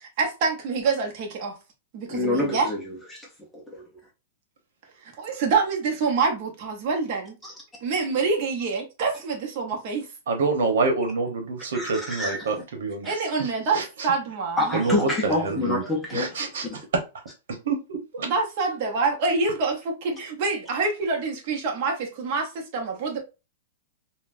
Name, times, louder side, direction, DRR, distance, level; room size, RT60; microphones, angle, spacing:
voice 1, 0.2-1.6 1.9-2.7 5.2-7.3 7.8-10.1 13.0-14.7 18.2-23.2, right 4 dB, 35° right, 0.8 m, -26 dB
voice 2, 2.1-3.3 3.5-3.8 7.4-7.5 11.7-12.5 13.0-13.2 14.6-16.3, left 2 dB, 5° left, 0.5 m, -27 dB
voice 3, 10.3-14.1 14.7-15.8 16.1-17.0 17.5-18.3, right 4 dB, 75° right, 0.9 m, -27 dB
3.8 x 2.1 x 2.5 m
supercardioid pair, 180°, 0 cm